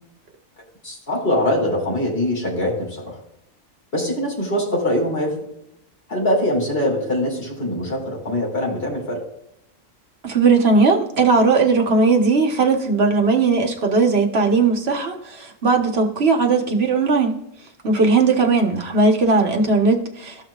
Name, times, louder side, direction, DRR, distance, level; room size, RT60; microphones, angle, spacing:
voice 1, 0.8-3.2 3.9-5.4 6.1-9.2, left 1 dB, 50° left, -3 dB, 2.9 m, -23 dB
voice 2, 10.2-17.3 17.8-20.5, right 4 dB, 55° right, 2 dB, 1.4 m, -18 dB
14.5 x 6.0 x 2.4 m, 0.81 s
omnidirectional pair, 1.3 m